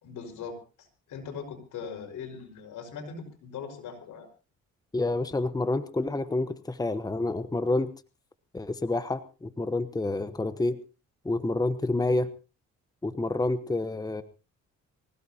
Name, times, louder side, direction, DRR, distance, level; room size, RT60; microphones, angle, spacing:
voice 1, 0.0-4.3, left 6 dB, 80° left, 3 dB, 5.5 m, -40 dB
voice 2, 4.9-7.9 8.5-10.8 11.2-12.3 13.0-14.2, left 2 dB, 10° left, 11 dB, 1.1 m, -28 dB
25.0 x 16.5 x 2.9 m, 0.33 s
cardioid pair, 90°, 30 cm